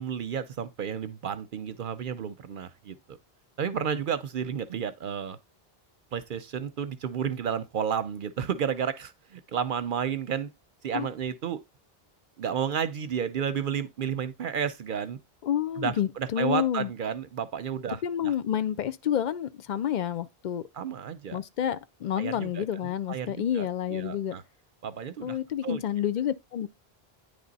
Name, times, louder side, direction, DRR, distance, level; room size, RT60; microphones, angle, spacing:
voice 1, 0.0-3.2 3.6-5.4 6.1-10.5 10.8-11.6 12.4-15.2 15.8-18.3 20.7-21.4 22.1-24.4 24.8-25.4 25.6-25.8, right 7 dB, 60° right, 0.6 m, -32 dB
voice 2, 15.4-16.9 18.0-20.6 21.3-24.3 25.2-26.7, left 10 dB, 60° left, 0.6 m, -29 dB
9.6 x 3.3 x 3.9 m
omnidirectional pair, 1.0 m